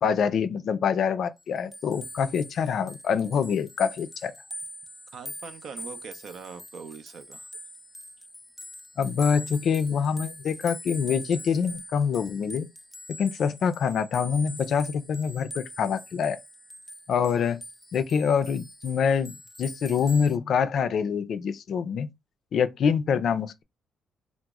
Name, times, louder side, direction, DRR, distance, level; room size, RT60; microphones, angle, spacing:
voice 1, 0.0-4.3 9.0-12.7 13.2-16.4 17.1-17.6 17.9-22.1 22.5-23.6, left 6 dB, 65° left, 0.4 m, -25 dB
sound 1, 1.4-20.4, left 1 dB, 5° left, 0.4 m, -43 dB
voice 2, 5.1-7.5, right 6 dB, 65° right, 0.5 m, -42 dB
2.9 x 2.0 x 3.5 m
cardioid pair, 90°, 0 cm